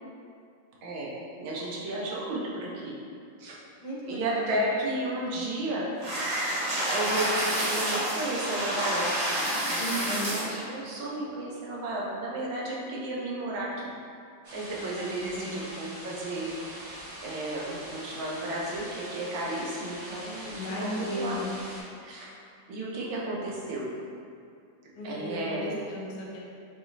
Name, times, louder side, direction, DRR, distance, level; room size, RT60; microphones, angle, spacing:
voice 1, 0.8-1.1 1.4-3.0 3.4-3.6 4.0-5.8 6.9-9.4 9.7-13.9 14.5-16.5 17.2-20.7 21.0-21.4 22.0-22.3 22.7-23.9 25.0-25.7, right 1 dB, 80° right, -4 dB, 1.6 m, -33 dB
voice 2, 3.8-4.6 9.8-10.3 14.8-15.7 20.5-21.6 24.9-26.4, equal, 80° left, -4 dB, 1.5 m, -36 dB
sound 1, 6.0-10.6, right 1 dB, 65° right, 1.9 m, -29 dB
sound 2, 14.4-21.8, equal, 35° right, 1.0 m, -43 dB
6.2 x 3.0 x 2.6 m, 2.4 s
omnidirectional pair, 2.1 m